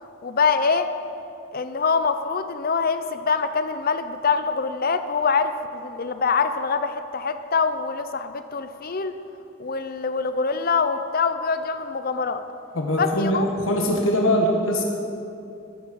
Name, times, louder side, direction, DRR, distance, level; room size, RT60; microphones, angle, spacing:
voice 1, 0.2-0.9 1.5-9.2 9.6-12.4 13.0-13.5, left 5 dB, 45° left, 10 dB, 0.6 m, -24 dB
voice 2, 12.7-14.8, equal, 75° left, 0 dB, 1.5 m, -22 dB
13.5 x 8.7 x 6.5 m, 2.7 s
head